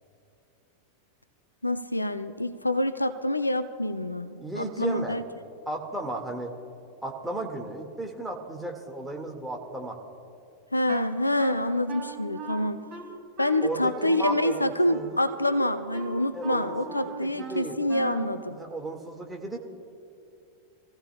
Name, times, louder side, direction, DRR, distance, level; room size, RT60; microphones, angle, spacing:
voice 1, 1.6-5.2 10.7-12.8 13.4-18.6, left 1 dB, 85° left, 11 dB, 0.5 m, -26 dB
voice 2, 4.4-5.2 5.7-6.5 7.0-10.0 13.6-15.2 16.3-17.8 18.5-19.6, right 2 dB, 5° right, 1 dB, 1.8 m, -34 dB
Wind instrument woodwind instrument, 10.9-18.4, right 4 dB, 30° right, 2.5 m, -40 dB
26.0 x 16.0 x 2.3 m, 2.6 s
figure-of-eight pair, 90°, 0 cm